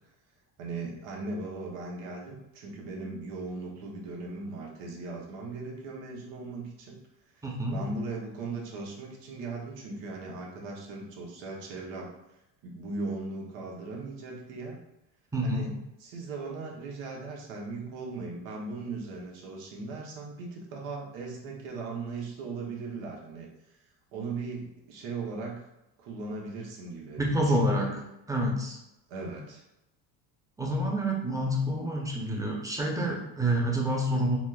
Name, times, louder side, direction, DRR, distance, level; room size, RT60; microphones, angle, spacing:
voice 1, 0.6-7.0 7.4-7.5 7.7-12.1 12.6-14.8 15.4-23.5 24.1-25.6 26.0-28.0 29.1-29.6, right 3 dB, 80° right, -2 dB, 1.0 m, -38 dB
voice 2, 7.4-7.8 15.3-15.7 27.2-27.9 28.3-28.8 30.6-34.4, right 1 dB, 5° right, -2 dB, 0.7 m, -28 dB
4.2 x 2.0 x 2.4 m, 0.91 s
supercardioid pair, 90°, 48 cm